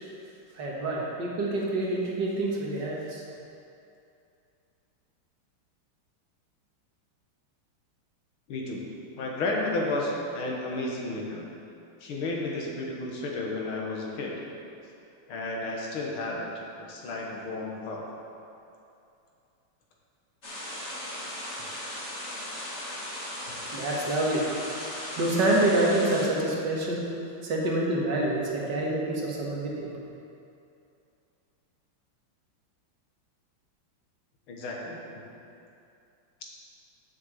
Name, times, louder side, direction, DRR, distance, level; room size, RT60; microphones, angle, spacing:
voice 1, 0.6-3.2 23.7-24.5 25.2-27.0 27.4-29.9, right 1 dB, 60° right, -3 dB, 1.9 m, -27 dB
voice 2, 8.5-8.9 9.2-11.4 12.0-14.3 15.3-16.5 16.9-18.0 34.5-35.2, left 2 dB, 85° left, -2 dB, 2.2 m, -32 dB
sound 1, 20.4-26.3, left 1 dB, 35° left, 1.9 m, -37 dB
6.9 x 6.8 x 7.3 m, 2.7 s
omnidirectional pair, 2.3 m